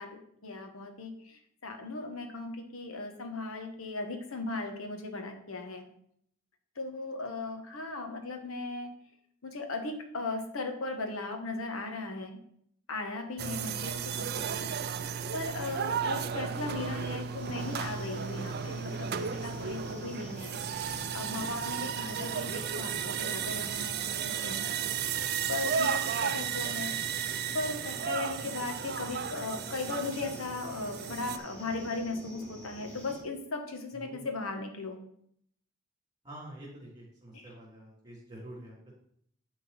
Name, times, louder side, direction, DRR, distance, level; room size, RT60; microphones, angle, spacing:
voice 1, 0.0-5.9 6.8-8.9 9.4-12.4 12.9-14.7 15.3-24.6 25.5-27.0 27.5-35.0 37.3-37.5, left 3 dB, 75° left, 5 dB, 1.3 m, -37 dB
sound 1, 13.4-31.4, right 7 dB, 50° right, 0.5 m, -34 dB
sound 2, 17.4-33.2, equal, 10° left, 2.7 m, -47 dB
voice 2, 33.9-34.3 36.2-38.9, right 1 dB, 20° right, -4 dB, 3.4 m, -47 dB
11.0 x 3.8 x 4.3 m, 0.68 s
head